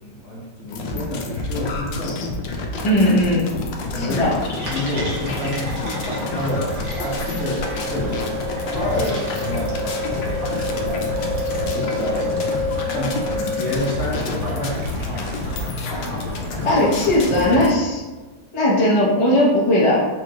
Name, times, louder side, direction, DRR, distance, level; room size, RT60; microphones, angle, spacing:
voice 1, 0.0-2.3 3.8-4.3 4.6-5.7 6.0-12.6 12.9-13.2 13.6-16.5, left 1 dB, 50° left, -6 dB, 1.0 m, -29 dB
sound 1, 0.7-17.7, left 3 dB, 80° left, 1.2 m, -29 dB
voice 2, 2.8-3.5 4.0-4.3 16.6-18.0 18.5-20.0, left 1 dB, 35° left, -7 dB, 0.5 m, -18 dB
sound 2, 4.1-17.5, right 1 dB, 75° right, 0.4 m, -35 dB
sound 3, 4.6-14.1, left 2 dB, 50° right, 1.0 m, -29 dB
4.4 x 2.3 x 3.0 m, 1.2 s
omnidirectional pair, 1.9 m